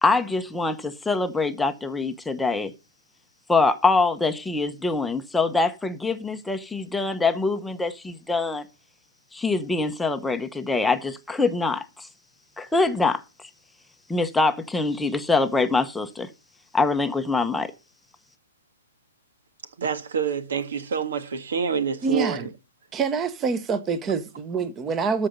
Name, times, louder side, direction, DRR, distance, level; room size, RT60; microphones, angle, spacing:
voice 1, 0.0-2.7 3.5-8.6 9.3-12.1 12.6-13.2 14.1-16.3 16.7-17.7, left 3 dB, 5° left, 0.8 m, -24 dB
voice 2, 19.8-22.5, right 6 dB, 75° right, 1.7 m, -27 dB
voice 3, 22.0-22.5 22.9-25.3, right 5 dB, 20° right, 1.1 m, -26 dB
13.5 x 5.1 x 6.7 m
hypercardioid pair, 150°, 0 cm